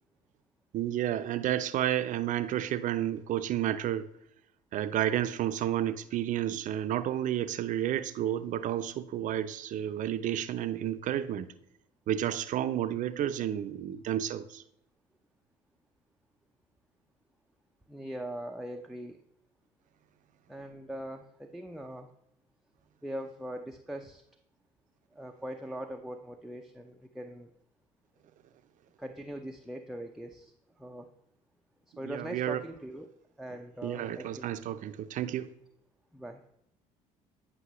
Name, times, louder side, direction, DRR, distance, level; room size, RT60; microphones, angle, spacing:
voice 1, 0.7-4.1 4.7-11.5 12.1-14.6 32.0-32.6 33.8-35.5, right 11 dB, 60° right, 11 dB, 0.6 m, -31 dB
voice 2, 17.9-19.2 20.5-22.1 23.0-24.2 25.1-27.5 29.0-31.1 32.0-33.1 33.4-34.5 36.1-36.4, right 1 dB, ahead, 3 dB, 0.6 m, -41 dB
9.9 x 5.3 x 3.0 m, 0.79 s
supercardioid pair, 75°, 15 cm